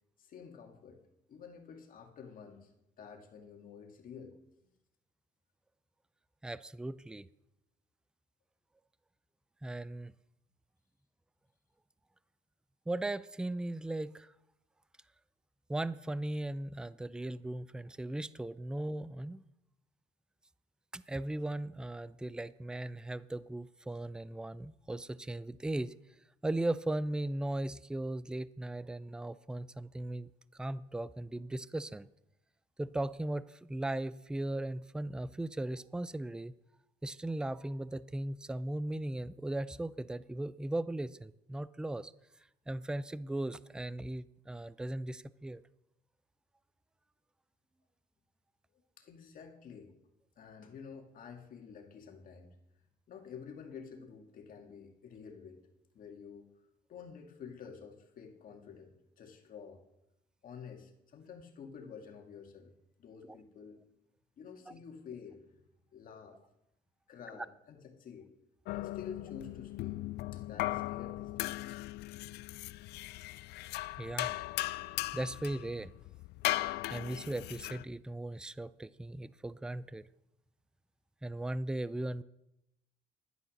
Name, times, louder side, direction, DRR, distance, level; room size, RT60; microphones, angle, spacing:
voice 1, 0.2-1.0 1.3-4.3 49.0-49.9 50.4-52.6 53.1-55.6 55.9-56.5 56.9-59.8 60.4-62.7 63.0-63.8 64.4-65.5 65.9-66.4 67.1-68.3 68.7-70.0 70.3-71.6, left 6 dB, 55° left, 3 dB, 2.2 m, -50 dB
voice 2, 6.4-7.3 9.6-10.1 12.9-14.3 15.7-19.4 20.9-25.9 26.4-30.3 30.6-32.1 32.8-36.5 37.0-42.1 42.7-45.6 63.2-63.4 64.7-64.8 67.4-67.5 74.0-74.4 75.1-75.9 76.5-80.0 81.2-82.2, right 1 dB, 5° right, 17 dB, 0.4 m, -37 dB
sound 1, 68.7-77.8, left 17 dB, 75° left, 0.4 m, -38 dB
11.0 x 9.8 x 6.5 m, 0.87 s
cardioid pair, 110°, 17 cm